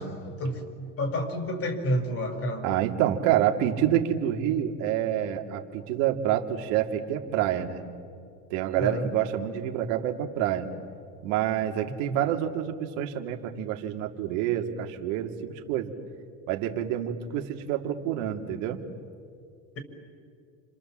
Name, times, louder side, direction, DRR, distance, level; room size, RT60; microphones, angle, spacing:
voice 1, 0.0-2.7 8.8-9.1 12.0-12.2, equal, 35° left, 6 dB, 5.0 m, -30 dB
voice 2, 2.6-7.8 8.5-10.7 11.2-15.9 16.5-18.8, right 11 dB, 75° right, 3 dB, 2.6 m, -27 dB
30.0 x 26.5 x 7.5 m, 2.3 s
supercardioid pair, 120°, 39 cm